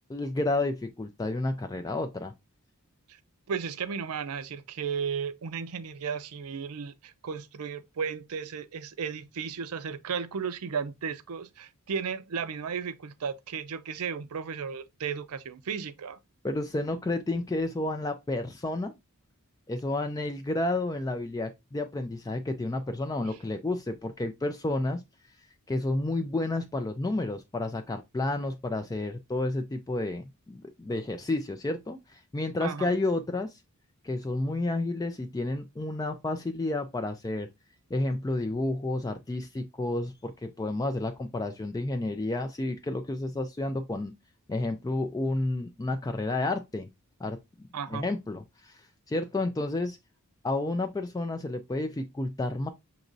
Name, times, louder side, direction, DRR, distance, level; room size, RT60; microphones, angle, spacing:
voice 1, 0.1-2.3 16.4-18.9 19.7-25.0 25.7-33.5 34.0-37.5 37.9-44.1 44.5-46.9 47.2-47.4 47.9-48.8 49.1-50.0 50.4-52.7, left 2 dB, 15° left, 0.3 m, -31 dB
voice 2, 3.5-16.2 32.6-33.0 47.7-48.0, right 6 dB, 75° right, 0.5 m, -34 dB
6.2 x 2.9 x 2.6 m
head